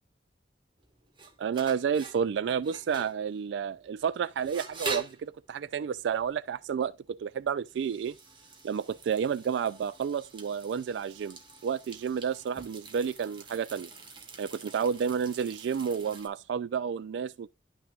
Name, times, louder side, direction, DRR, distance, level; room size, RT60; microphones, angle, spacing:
sound 1, 0.8-16.3, right 3 dB, 25° right, 1.3 m, -44 dB
voice 1, 1.4-8.2 8.6-13.9 14.4-17.5, right 7 dB, 80° right, 0.3 m, -31 dB
11.0 x 6.0 x 2.4 m
head